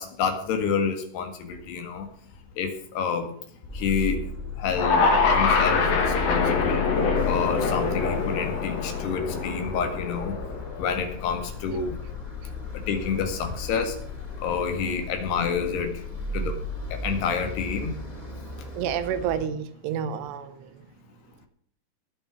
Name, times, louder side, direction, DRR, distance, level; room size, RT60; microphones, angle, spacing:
voice 1, 0.0-2.1 2.6-3.3 3.7-4.2 4.6-6.8 7.3-10.4 10.8-12.0 12.9-14.0 14.4-15.9 16.3-16.5 16.9-17.9, left 6 dB, 75° left, 6 dB, 3.9 m, -28 dB
sound 1, 3.7-19.5, left 5 dB, 10° left, 3.0 m, -34 dB
sound 2, 4.7-11.0, left 3 dB, 60° left, 3.9 m, -25 dB
voice 2, 18.8-20.6, right 8 dB, 85° right, 12 dB, 3.1 m, -29 dB
19.0 x 6.5 x 6.2 m, 0.63 s
omnidirectional pair, 4.7 m